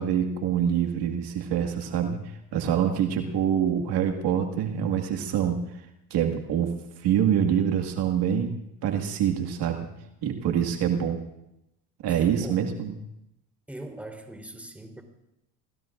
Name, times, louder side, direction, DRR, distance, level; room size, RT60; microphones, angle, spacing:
voice 1, 0.0-5.8 6.1-8.5 8.8-9.9 10.2-11.2 12.0-12.9, right 9 dB, 60° right, 4 dB, 2.0 m, -25 dB
voice 2, 2.8-3.4 10.5-10.9 12.1-12.6 13.7-15.0, right 1 dB, 5° right, 2 dB, 3.8 m, -42 dB
28.5 x 19.5 x 2.6 m, 0.86 s
supercardioid pair, 85°, 45 cm